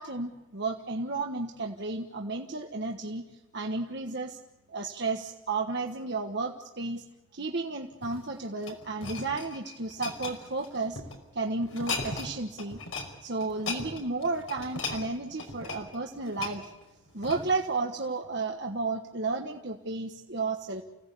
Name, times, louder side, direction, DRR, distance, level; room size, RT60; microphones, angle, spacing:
voice 1, 0.0-3.2 3.5-4.4 4.7-7.0 7.3-11.0 11.3-12.8 13.2-16.7 17.1-20.8, right 3 dB, 55° right, 2 dB, 1.5 m, -33 dB
sound 1, 7.9-11.2 11.6-12.3 12.6-13.1 13.4-17.7 18.2-18.4, left 4 dB, 80° left, 5.3 m, -38 dB
30.0 x 17.0 x 8.4 m, 1.1 s
head